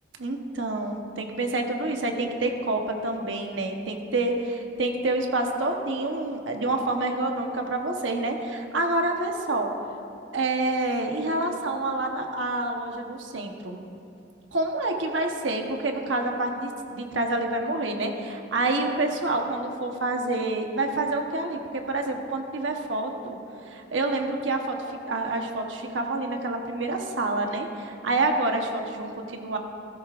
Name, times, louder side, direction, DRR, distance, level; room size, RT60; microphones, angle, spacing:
voice 1, 0.2-4.3 4.8-9.7 10.3-13.8 14.5-23.4 23.7-24.8 25.1-29.6, right 2 dB, 85° right, 3 dB, 1.1 m, -27 dB
16.0 x 15.0 x 2.5 m, 2.7 s
head